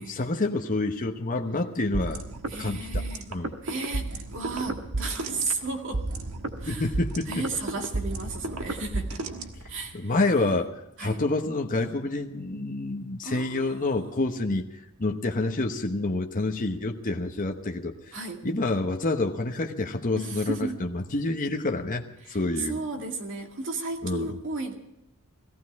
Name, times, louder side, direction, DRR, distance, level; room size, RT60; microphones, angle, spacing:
voice 1, 0.0-2.2 2.6-3.0 3.3-3.6 6.7-7.4 9.9-14.6 15.0-18.2 18.4-22.8 24.0-24.4, left 2 dB, 40° left, 4 dB, 1.1 m, -28 dB
sound 1, 1.9-9.9, right 2 dB, 80° right, 1.4 m, -33 dB
voice 2, 2.5-3.3 3.6-6.0 6.6-6.9 7.3-9.2 9.7-10.6 11.0-11.2 13.2-14.0 18.1-18.4 20.2-20.8 22.2-24.7, right 3 dB, 65° right, 3 dB, 2.2 m, -34 dB
18.5 x 15.0 x 4.7 m, 0.86 s
head